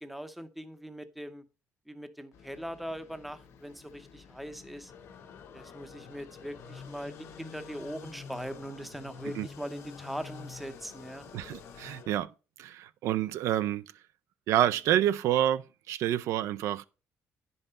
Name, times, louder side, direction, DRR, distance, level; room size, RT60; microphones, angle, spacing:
voice 1, 0.0-1.4 1.9-4.9 5.5-11.3, equal, ahead, 0.7 m, -41 dB
sound 1, 2.3-12.0, left 6 dB, 70° left, 1.2 m, -50 dB
sound 2, 4.9-12.2, left 7 dB, 55° left, 1.7 m, -52 dB
voice 2, 11.3-12.3 12.6-13.8 14.5-16.9, right 12 dB, 80° right, 0.4 m, -28 dB
10.0 x 5.5 x 4.0 m
cardioid pair, 155°, 5 cm